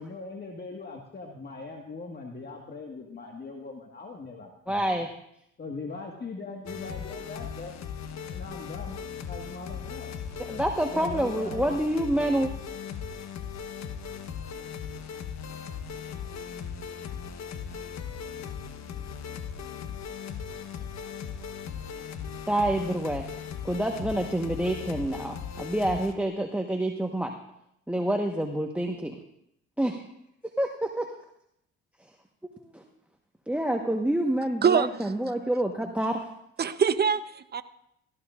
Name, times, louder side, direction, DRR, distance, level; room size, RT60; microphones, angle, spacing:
voice 1, 0.0-5.0 5.6-7.7 8.3-10.1 10.5-10.6 10.9-12.3, left 3 dB, 35° left, 1 dB, 1.7 m, -41 dB
voice 2, 4.7-5.1 10.4-12.5 22.5-23.2 23.6-27.3 27.9-29.2 29.8-30.0 30.6-31.1 32.4-32.8 33.5-36.2, right 1 dB, 5° right, 3 dB, 1.2 m, -27 dB
sound 1, 6.7-26.1, left 7 dB, 60° left, 1.3 m, -38 dB
voice 3, 34.6-35.1 36.6-37.6, right 7 dB, 35° right, 11 dB, 0.9 m, -24 dB
17.5 x 14.0 x 2.5 m, 0.78 s
supercardioid pair, 65°, 30 cm